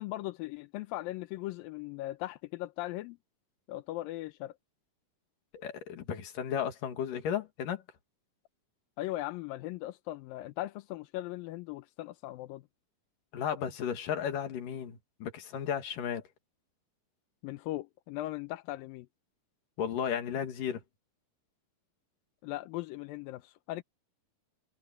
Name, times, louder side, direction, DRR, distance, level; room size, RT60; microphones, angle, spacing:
voice 1, 0.0-3.2 3.7-4.5 9.0-12.6 17.4-19.1 22.4-23.8, left 16 dB, 85° left, 2.5 m, -38 dB
voice 2, 5.5-7.8 13.3-16.2 19.8-20.8, left 8 dB, 65° left, 3.6 m, -34 dB
omnidirectional pair, 4.1 m